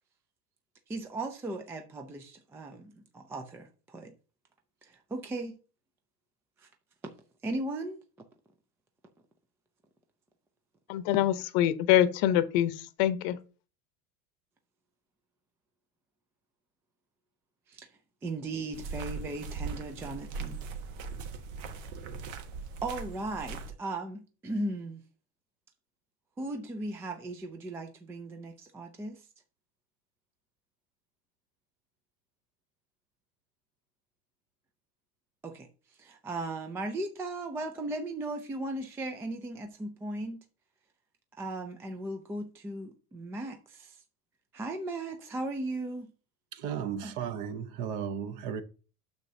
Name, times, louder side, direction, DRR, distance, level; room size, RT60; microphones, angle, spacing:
voice 1, 0.9-4.1 4.8-5.6 6.6-6.7 7.4-8.0 17.7-17.9 18.2-20.6 22.8-25.0 26.4-29.3 35.4-35.7 36.0-40.4 41.4-44.0 44.5-46.1 47.0-47.1, right 2 dB, 5° right, 0.3 m, -37 dB
voice 2, 10.9-13.4, left 12 dB, 50° left, 0.8 m, -25 dB
sound 1, 18.7-23.7, right 5 dB, 65° right, 1.4 m, -39 dB
voice 3, 46.5-48.6, right 8 dB, 45° right, 0.9 m, -35 dB
9.2 x 6.7 x 2.7 m
supercardioid pair, 130°, 42 cm